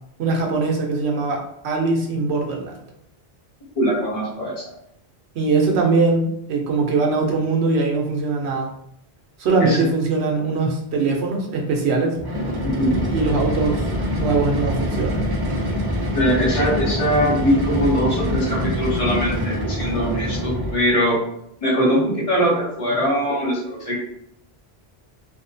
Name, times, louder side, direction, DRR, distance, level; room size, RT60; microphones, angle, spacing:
voice 1, 0.2-2.7 5.3-8.7 9.4-12.2 13.1-15.2, right 3 dB, 80° right, 0 dB, 0.9 m, -21 dB
voice 2, 3.8-4.6 9.6-9.8 12.6-13.0 16.1-21.2 21.6-24.0, equal, 35° left, -5 dB, 0.8 m, -21 dB
sound 1, 12.2-20.9, equal, 35° right, 0.4 m, -25 dB
2.7 x 2.1 x 2.6 m, 0.73 s
omnidirectional pair, 1.1 m